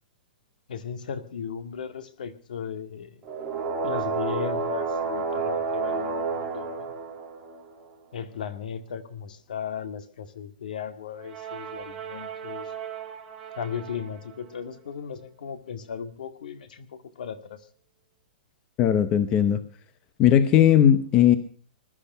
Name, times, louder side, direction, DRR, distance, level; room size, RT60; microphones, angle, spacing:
voice 1, 0.7-3.3 3.8-6.9 8.1-12.7 13.5-17.6, left 7 dB, 65° left, 10 dB, 2.1 m, -36 dB
sound 1, 3.2-7.8 11.2-14.1, right 4 dB, 15° right, 2.7 m, -31 dB
voice 2, 18.8-19.6 20.2-21.4, left 10 dB, 20° left, 12 dB, 0.8 m, -18 dB
21.0 x 12.0 x 5.6 m, 0.41 s
hypercardioid pair, 175°, 5 cm